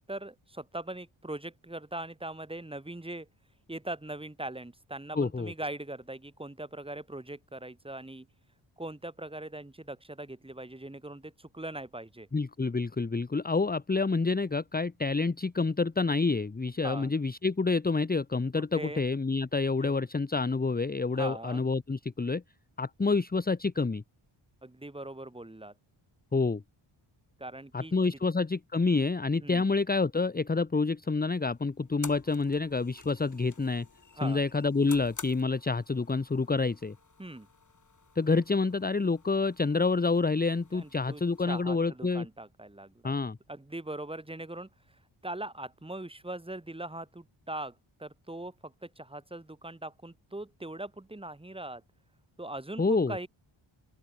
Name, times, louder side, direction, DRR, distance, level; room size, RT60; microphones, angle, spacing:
voice 1, 0.1-3.3 3.7-8.3 8.8-12.3 16.8-17.1 18.5-19.0 19.8-20.0 21.1-21.6 24.6-25.7 27.4-27.9 29.4-29.7 34.2-34.4 37.2-37.5 40.7-41.2 41.5-43.1 43.5-44.7 45.2-51.8 52.4-53.3, right 1 dB, 10° right, 3.2 m, -41 dB
voice 2, 5.1-5.5 12.3-22.4 22.8-24.0 26.3-26.6 27.7-33.9 34.2-36.9 38.2-42.3 43.0-43.4 52.8-53.2, left 4 dB, 20° left, 1.1 m, -28 dB
sound 1, 31.0-41.6, left 5 dB, 35° left, 5.4 m, -51 dB
open air
wide cardioid pair, 165°, 49 cm